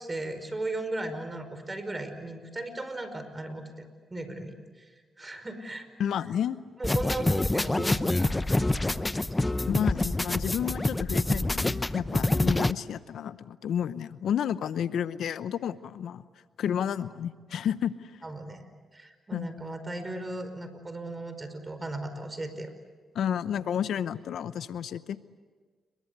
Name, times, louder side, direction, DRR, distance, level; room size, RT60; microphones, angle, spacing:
voice 1, 0.0-4.9 5.2-5.9 6.8-9.3 18.2-18.7 18.9-22.7, right 2 dB, 25° right, 10 dB, 5.2 m, -37 dB
voice 2, 6.0-6.6 9.7-16.2 16.6-18.1 19.3-19.5 23.1-25.2, left 9 dB, 75° left, 14 dB, 0.8 m, -31 dB
sound 1, 6.8-12.7, left 2 dB, 20° left, 0.9 m, -26 dB
29.5 x 23.0 x 8.2 m, 1.5 s
supercardioid pair, 60°, 0 cm